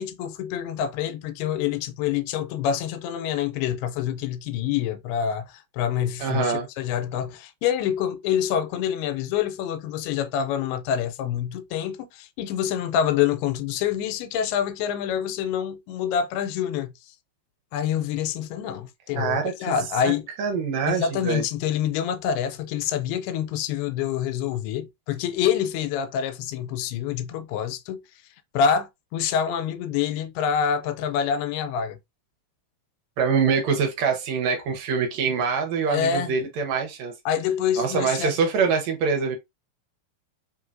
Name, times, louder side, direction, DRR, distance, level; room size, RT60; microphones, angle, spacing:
voice 1, 0.0-16.9 17.7-20.3 20.9-28.0 28.5-32.0 35.9-36.3 37.3-38.4, left 8 dB, 90° left, 2.5 m, -26 dB
voice 2, 6.2-6.7 19.1-19.7 20.0-20.1 20.4-21.4 33.2-37.1 37.8-39.4, right 5 dB, 80° right, 1.5 m, -24 dB
5.5 x 3.1 x 2.5 m
omnidirectional pair, 4.5 m